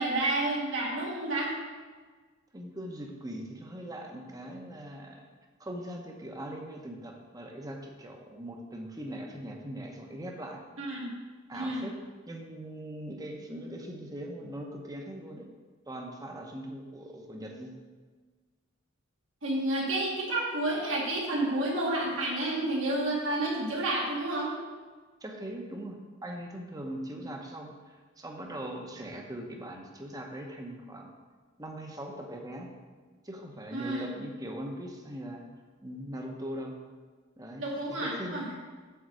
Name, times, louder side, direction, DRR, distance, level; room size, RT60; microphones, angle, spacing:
voice 1, 0.0-1.5 10.8-11.1 11.5-11.9 19.4-24.5 33.7-34.1 37.6-38.4, right 1 dB, 90° right, -4 dB, 2.1 m, -30 dB
voice 2, 2.5-5.3 5.6-10.6 11.5-11.9 12.3-15.5 15.9-17.7 25.2-31.1 31.6-32.7 33.2-35.4 35.8-36.7 37.4-37.6 37.9-38.5, right 1 dB, 20° right, 1 dB, 0.9 m, -41 dB
8.2 x 3.8 x 6.2 m, 1.4 s
head